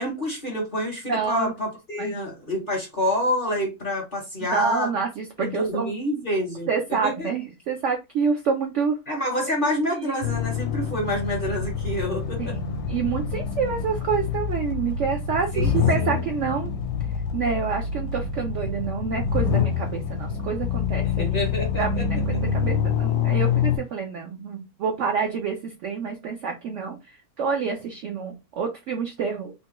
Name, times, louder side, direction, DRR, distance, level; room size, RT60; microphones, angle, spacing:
voice 1, 0.0-4.9 5.4-6.7 7.0-7.3 9.1-12.5 15.5-16.2 21.2-22.0, equal, 50° left, 0 dB, 0.7 m, -27 dB
voice 2, 1.1-1.5 2.0-2.2 4.4-5.9 6.7-9.0 10.0-10.1 12.4-16.7 17.3-29.5, right 6 dB, 75° right, 3 dB, 0.7 m, -28 dB
sound 1, 10.2-23.8, left 7 dB, 75° left, 1.1 m, -26 dB
3.3 x 2.1 x 2.9 m, 0.25 s
omnidirectional pair, 1.8 m